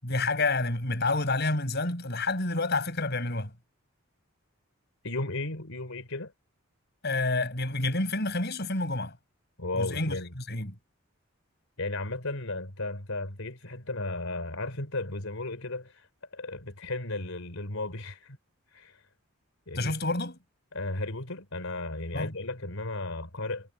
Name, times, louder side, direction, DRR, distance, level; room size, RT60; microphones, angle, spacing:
voice 1, 0.0-3.5 7.0-9.2 9.7-10.7 19.7-20.4 22.1-22.3, left 2 dB, 50° left, 6.2 m, -29 dB
voice 2, 5.0-6.3 9.6-10.3 11.8-16.1 16.3-18.4 18.7-19.0 19.7-20.0 20.7-23.7, left 2 dB, 80° left, 3.6 m, -35 dB
head